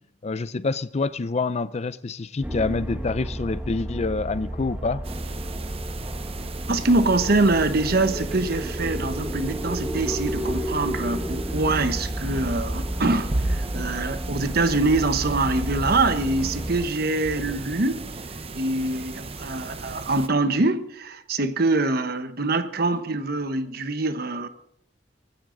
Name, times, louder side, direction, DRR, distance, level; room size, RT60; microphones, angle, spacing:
voice 1, 0.2-5.0, left 3 dB, 35° left, 0.5 m, -27 dB
sound 1, 2.4-16.9, right 1 dB, 10° right, 1.6 m, -31 dB
sound 2, 5.0-20.3, right 2 dB, 35° right, 0.9 m, -35 dB
voice 2, 6.7-18.0 18.5-24.5, right 2 dB, 55° right, 1.1 m, -24 dB
18.0 x 16.0 x 3.9 m
head